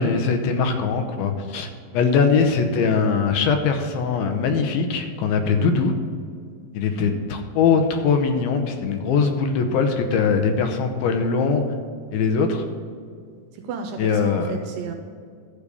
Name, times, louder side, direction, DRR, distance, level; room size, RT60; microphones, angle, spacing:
voice 1, 0.0-1.7 1.9-5.9 6.7-11.6 12.1-12.7 14.0-14.5, left 5 dB, 80° left, 5 dB, 2.6 m, -21 dB
voice 2, 13.6-14.9, right 6 dB, 80° right, 5 dB, 2.0 m, -33 dB
12.0 x 5.1 x 6.8 m, 2.1 s
omnidirectional pair, 4.4 m